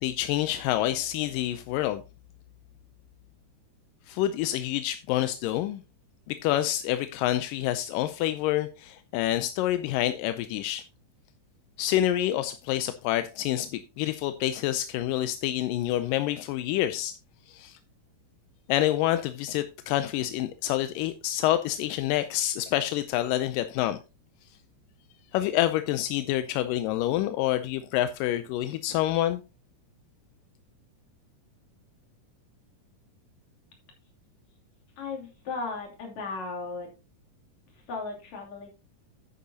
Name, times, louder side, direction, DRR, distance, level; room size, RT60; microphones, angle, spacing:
voice 1, 0.0-2.0 4.1-5.8 6.3-10.8 11.8-17.2 17.5-17.8 18.7-24.0 25.3-29.4, left 13 dB, 85° left, 2.3 m, -27 dB
voice 2, 35.0-36.9 37.7-38.7, left 3 dB, 60° left, 4.0 m, -36 dB
10.0 x 9.5 x 2.8 m
omnidirectional pair, 3.8 m